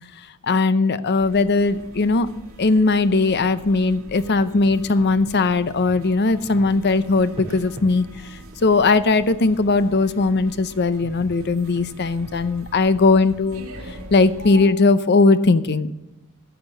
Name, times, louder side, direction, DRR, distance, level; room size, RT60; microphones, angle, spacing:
voice 1, 0.4-2.3 2.6-8.0 8.6-15.9, left 3 dB, 50° left, 14 dB, 0.7 m, -19 dB
sound 1, 1.2-14.7, right 1 dB, 80° right, 2.3 m, -43 dB
sound 2, 4.0-12.4, equal, 30° right, 4.4 m, -43 dB
15.0 x 6.0 x 8.3 m, 0.97 s
head